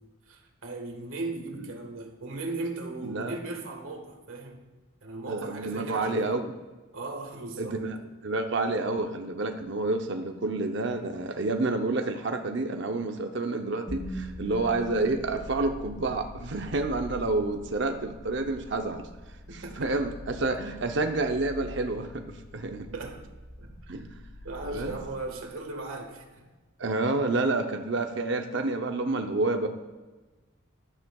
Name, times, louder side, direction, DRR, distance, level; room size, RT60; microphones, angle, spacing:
voice 1, 0.3-4.6 5.0-6.4 6.9-7.8 19.5-19.8 22.9-23.2 23.6-23.7 24.4-26.4, right 2 dB, 80° right, 3 dB, 1.6 m, -37 dB
voice 2, 3.0-3.4 5.3-6.5 7.6-19.1 19.5-22.9 23.9-24.3 24.6-25.0 26.8-29.7, right 2 dB, 60° right, 5 dB, 0.6 m, -29 dB
sound 1, 13.9-26.0, left 1 dB, 20° left, 0.6 m, -43 dB
12.5 x 9.5 x 2.3 m, 1.2 s
head